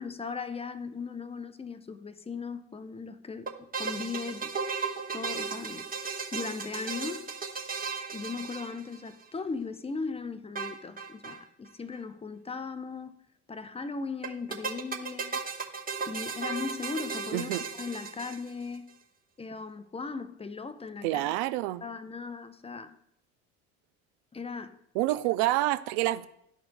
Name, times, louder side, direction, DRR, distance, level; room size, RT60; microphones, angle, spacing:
voice 1, 0.0-4.5 5.1-5.9 6.3-7.3 8.1-13.1 13.5-15.4 16.1-17.5 17.8-18.9 19.4-21.3 21.8-23.0 24.3-24.8, left 4 dB, 15° left, 0.6 m, -38 dB
sound 1, 3.5-9.2 10.6-11.4 11.7-11.8 11.9-12.0 14.2-18.7, right 5 dB, 20° right, 1.2 m, -35 dB
voice 2, 17.3-17.6 21.0-21.8 24.9-26.3, right 16 dB, 65° right, 0.5 m, -27 dB
12.0 x 4.3 x 2.2 m
hypercardioid pair, 65°, 38 cm